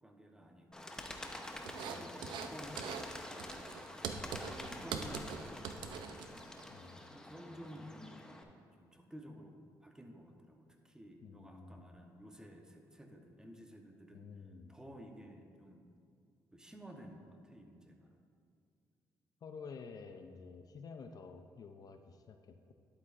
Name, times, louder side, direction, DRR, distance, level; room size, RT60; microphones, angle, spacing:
voice 1, 0.0-3.6 4.2-6.5 7.1-14.3 14.7-15.8 16.5-18.2, equal, 10° right, 3 dB, 0.9 m, -54 dB
Bird, 0.7-8.4, left 1 dB, 10° left, 0.8 m, -48 dB
sound 1, 1.7-2.5 2.8-3.1 3.4-6.6, right 6 dB, 80° right, 0.5 m, -42 dB
voice 2, 1.8-2.4 6.7-7.1 11.2-12.0 14.1-14.7 19.4-22.7, left 5 dB, 55° left, 7 dB, 0.5 m, -51 dB
11.0 x 8.0 x 2.5 m, 2.3 s
cardioid pair, 85°, 8 cm